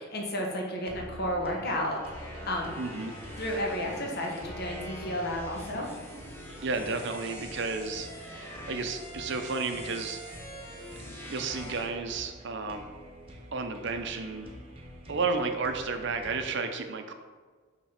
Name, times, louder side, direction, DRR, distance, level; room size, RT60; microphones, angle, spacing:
voice 1, 0.1-2.7 3.4-5.9, left 1 dB, 50° left, 0 dB, 1.1 m, -32 dB
sound 1, 0.8-16.4, equal, 30° right, 1.0 m, -47 dB
sound 2, 2.0-11.9, equal, 10° left, 1.0 m, -44 dB
voice 2, 2.8-3.1 6.6-10.2 11.3-12.9 13.5-14.5 15.1-17.1, right 4 dB, 60° right, 6 dB, 0.7 m, -32 dB
5.9 x 3.7 x 5.7 m, 1.5 s
head